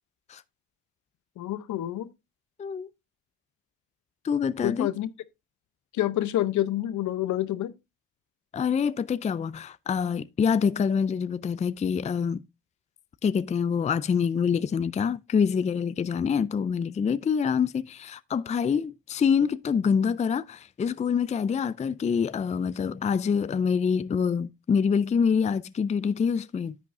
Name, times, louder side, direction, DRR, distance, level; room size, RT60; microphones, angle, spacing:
voice 1, 1.4-2.1 4.6-5.1 5.9-7.7, left 13 dB, 75° left, 0.8 m, -28 dB
voice 2, 4.2-4.9 8.5-12.4 13.2-26.7, left 6 dB, 25° left, 0.4 m, -26 dB
10.5 x 8.3 x 2.6 m
cardioid pair, 90°, 30 cm